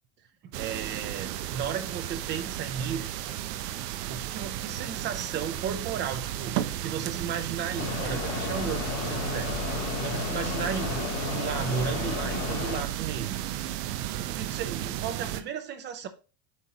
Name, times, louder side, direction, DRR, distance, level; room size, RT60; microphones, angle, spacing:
voice 1, 0.4-3.1 4.1-9.5 10.0-13.4 14.3-16.1, right 7 dB, 25° right, 0.6 m, -34 dB
sound 1, 0.5-15.4, right 12 dB, 80° right, 0.9 m, -34 dB
Mechanisms, 7.8-12.8, left 5 dB, 75° left, 2.8 m, -33 dB
8.4 x 5.2 x 2.9 m
supercardioid pair, 165°, 48 cm